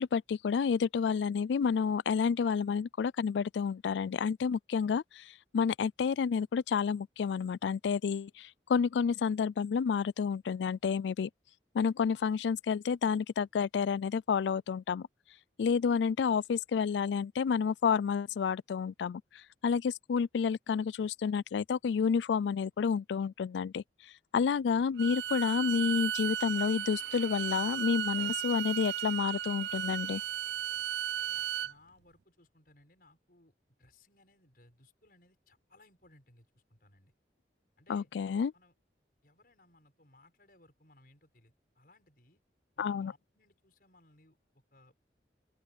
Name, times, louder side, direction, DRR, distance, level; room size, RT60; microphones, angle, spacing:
voice 1, 0.0-11.3 11.7-15.1 15.6-23.8 24.3-30.2 37.9-38.5 42.8-43.1, left 6 dB, 85° left, 0.3 m, -30 dB
Bowed string instrument, 25.0-31.7, right 10 dB, 75° right, 0.4 m, -35 dB
voice 2, 31.2-33.5 33.8-37.1 37.8-38.1 38.5-38.7 39.2-42.4 42.7-44.9, left 2 dB, 55° left, 6.8 m, -63 dB
open air
head